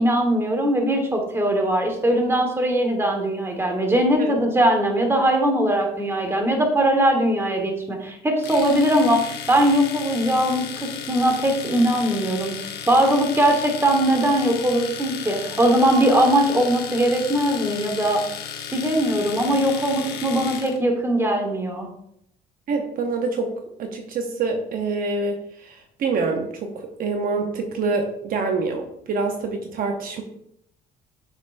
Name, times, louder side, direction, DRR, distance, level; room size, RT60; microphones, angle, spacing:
voice 1, 0.0-18.3 18.7-21.9, right 1 dB, 15° right, 3 dB, 1.4 m, -20 dB
Domestic sounds home sounds, 8.4-20.8, left 8 dB, 75° left, 1.0 m, -34 dB
voice 2, 22.7-23.5 23.8-30.2, right 4 dB, 55° right, 4 dB, 0.8 m, -26 dB
6.7 x 5.9 x 2.6 m, 0.74 s
cardioid pair, 110°, 17 cm